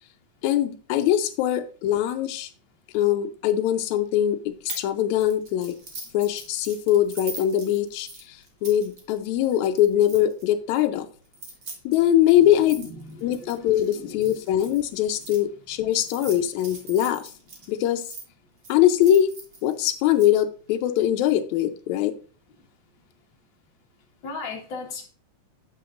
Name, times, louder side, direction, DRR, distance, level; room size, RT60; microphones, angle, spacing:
voice 1, 0.4-2.5 2.9-4.4 4.8-5.7 6.1-8.1 8.6-11.1 11.8-12.9 13.2-17.2 17.7-18.0 18.7-19.3 19.6-22.1, left 11 dB, 90° left, 7 dB, 1.6 m, -22 dB
sound 1, 4.7-4.9 5.2-10.5 11.2-15.4 15.9-18.2 18.6-20.3, right 4 dB, 75° right, 0.8 m, -41 dB
voice 2, 12.3-14.6 15.2-15.3 24.2-25.1, left 3 dB, 50° left, 0 dB, 1.5 m, -38 dB
7.6 x 7.6 x 2.5 m, 0.40 s
omnidirectional pair, 4.1 m